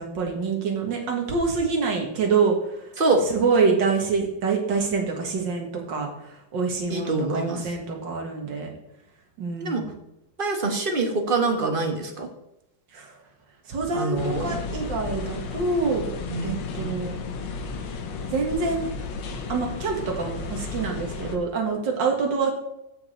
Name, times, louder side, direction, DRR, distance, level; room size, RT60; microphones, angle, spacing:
voice 1, 0.0-2.9 3.3-8.7 9.4-9.9 12.9-13.1 13.7-16.1 16.4-17.2 18.3-18.9 19.5-22.5, right 4 dB, 80° right, 1 dB, 2.4 m, -26 dB
voice 2, 6.9-7.7 9.6-9.8 10.4-12.3 13.9-14.6 16.3-16.5 16.8-17.0, right 3 dB, 30° right, 4 dB, 1.5 m, -25 dB
sound 1, 14.2-21.4, left 4 dB, 85° left, 1.8 m, -33 dB
15.5 x 5.2 x 4.4 m, 0.84 s
omnidirectional pair, 1.9 m